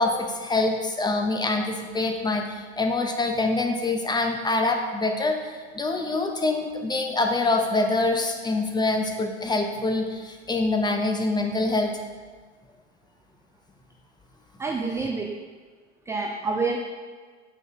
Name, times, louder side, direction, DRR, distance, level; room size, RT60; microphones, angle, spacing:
voice 1, 0.0-11.9, left 2 dB, 10° left, 3 dB, 0.8 m, -25 dB
voice 2, 14.6-15.4 16.1-16.8, right 4 dB, 10° right, 2 dB, 0.3 m, -27 dB
7.8 x 5.2 x 3.8 m, 1.5 s
hypercardioid pair, 80°, 35 cm